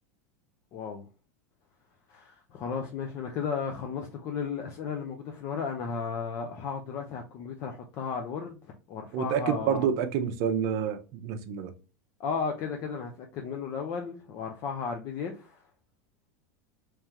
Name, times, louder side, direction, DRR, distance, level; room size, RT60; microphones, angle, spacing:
voice 1, 0.7-1.1 2.1-9.9 12.2-15.6, left 6 dB, 35° left, 0.6 m, -34 dB
voice 2, 9.1-11.7, right 8 dB, 45° right, 0.7 m, -28 dB
3.5 x 3.1 x 2.9 m
supercardioid pair, 155°, 8 cm